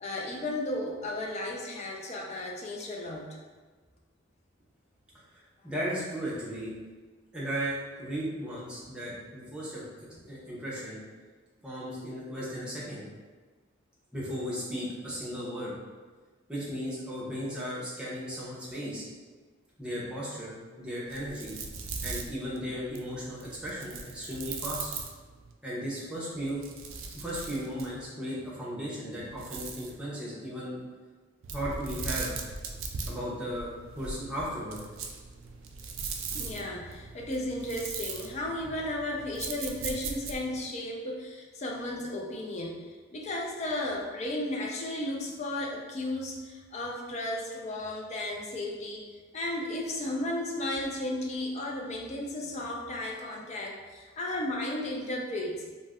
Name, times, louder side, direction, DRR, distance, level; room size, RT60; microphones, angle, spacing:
voice 1, 0.0-3.3 36.3-42.8 43.1-49.0 49.3-55.6, left 1 dB, 35° left, -1 dB, 0.4 m, -34 dB
voice 2, 5.6-6.7 7.3-9.9 10.2-11.0 11.6-13.0 14.1-15.7 16.5-19.0 19.8-21.6 22.0-24.9 25.6-26.6 27.1-30.8 31.5-32.4 33.1-33.7 33.9-34.8, equal, 5° right, -7 dB, 0.7 m, -36 dB
sound 1, 21.1-25.5 26.3-28.1 29.2-30.0 31.4-40.6, right 4 dB, 80° right, 0.3 m, -40 dB
2.4 x 2.1 x 3.5 m, 1.3 s
head